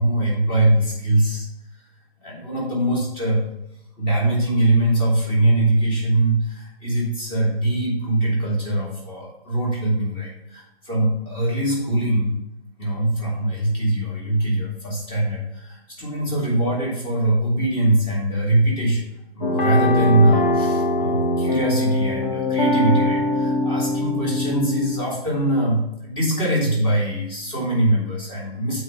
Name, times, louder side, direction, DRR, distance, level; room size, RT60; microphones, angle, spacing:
voice 1, 0.0-1.5 1.7-1.9 2.2-3.4 4.0-12.4 12.8-28.8, right 1 dB, 15° left, -4 dB, 2.9 m, -22 dB
sound 1, 19.4-25.0, left 1 dB, 40° left, 2.0 m, -22 dB
7.8 x 4.8 x 5.5 m, 0.86 s
hypercardioid pair, 150°, 31 cm